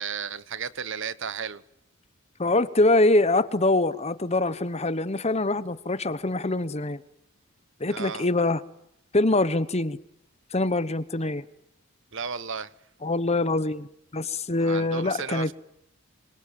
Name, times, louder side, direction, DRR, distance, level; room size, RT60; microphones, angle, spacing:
voice 1, 0.0-1.6 7.9-8.3 12.1-12.7 14.6-15.5, right 6 dB, 60° right, 1.3 m, -34 dB
voice 2, 2.4-7.0 7.8-8.6 9.1-10.0 10.5-11.4 13.0-13.9 14.1-15.5, left 2 dB, 30° left, 1.1 m, -24 dB
27.0 x 25.5 x 7.7 m
head